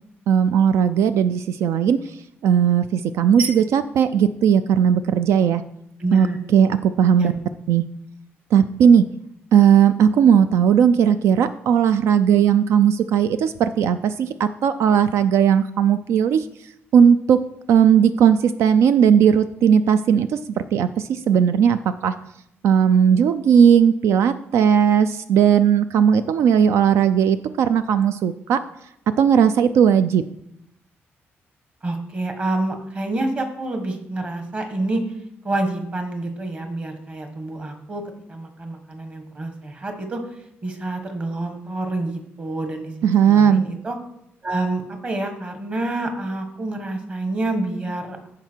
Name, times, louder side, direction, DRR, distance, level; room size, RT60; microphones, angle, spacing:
voice 1, 0.3-5.6 6.1-6.3 6.5-7.3 7.7-7.8 8.5-9.1 9.5-16.5 16.9-17.4 17.7-20.4 20.7-22.2 22.6-28.6 29.2-30.2 43.0-43.7, right 8 dB, 80° right, 11 dB, 0.4 m, -17 dB
voice 2, 6.0-6.4 7.2-7.4 31.8-35.0 35.4-38.0 38.3-40.2 40.6-44.0 44.4-48.2, right 2 dB, 30° right, 5 dB, 1.4 m, -27 dB
14.0 x 4.9 x 4.5 m, 0.78 s
cardioid pair, 155°, 5 cm